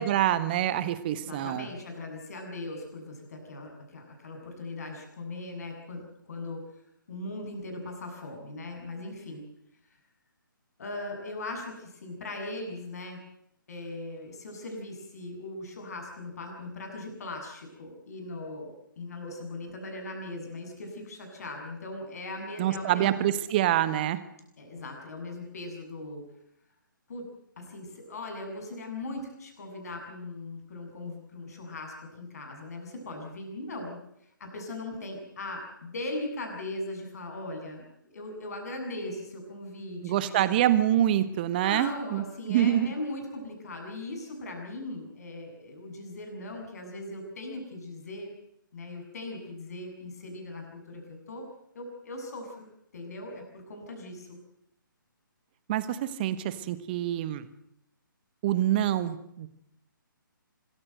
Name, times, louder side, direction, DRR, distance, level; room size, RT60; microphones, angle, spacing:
voice 1, 0.0-1.7 22.6-24.2 40.0-42.9 55.7-57.5 58.4-59.5, right 12 dB, 25° right, 13 dB, 1.4 m, -26 dB
voice 2, 1.1-6.0 6.3-6.6 7.1-9.5 10.8-13.2 13.7-23.1 24.6-26.2 27.1-27.3 27.6-34.0 34.4-37.9 38.1-40.4 41.6-48.3 48.7-51.4 51.7-52.7 52.9-54.4, left 2 dB, 45° left, 4 dB, 7.4 m, -39 dB
25.5 x 15.0 x 7.9 m, 0.78 s
figure-of-eight pair, 140°, 11 cm